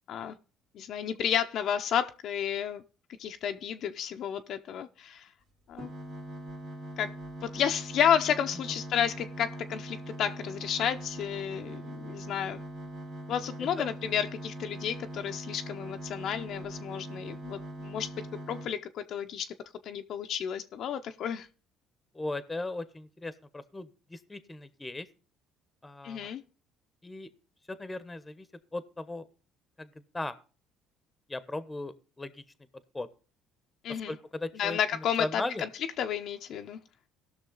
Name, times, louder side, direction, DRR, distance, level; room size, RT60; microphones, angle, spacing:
voice 1, 0.7-2.8 3.2-5.3 5.7-5.9 7.0-7.1 7.4-12.6 13.3-18.1 18.5-19.5 19.8-21.5 26.0-26.4 33.8-34.2 34.5-35.7 36.0-36.8, left 9 dB, 60° left, 0.7 m, -31 dB
sound 1, 5.7-18.7, right 1 dB, 70° right, 2.9 m, -42 dB
voice 2, 22.1-25.1 25.8-26.3 27.0-27.3 27.7-28.5 28.7-29.2 29.8-30.4 31.3-32.4 32.9-33.1 34.1-35.6, left 2 dB, 15° left, 1.0 m, -37 dB
17.0 x 6.3 x 3.9 m
cardioid pair, 105°, 0 cm